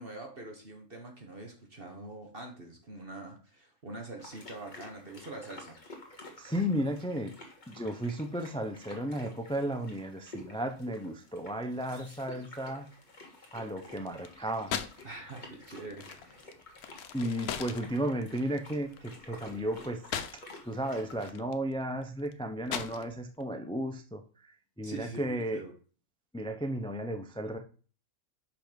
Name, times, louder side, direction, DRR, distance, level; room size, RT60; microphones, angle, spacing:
voice 1, 0.0-5.8 15.0-16.5 24.8-25.7, right 2 dB, 40° right, 2 dB, 1.5 m, -44 dB
sound 1, 4.2-21.3, left 2 dB, 30° left, 1.7 m, -51 dB
voice 2, 6.4-7.3 7.7-12.9 13.5-14.7 17.1-20.0 20.3-25.6 26.3-27.6, equal, 10° left, 6 dB, 0.3 m, -34 dB
sound 2, 13.9-15.1 15.4-20.8 21.1-23.4, left 8 dB, 80° left, 1.2 m, -40 dB
6.1 x 5.9 x 5.1 m, 0.39 s
omnidirectional pair, 1.6 m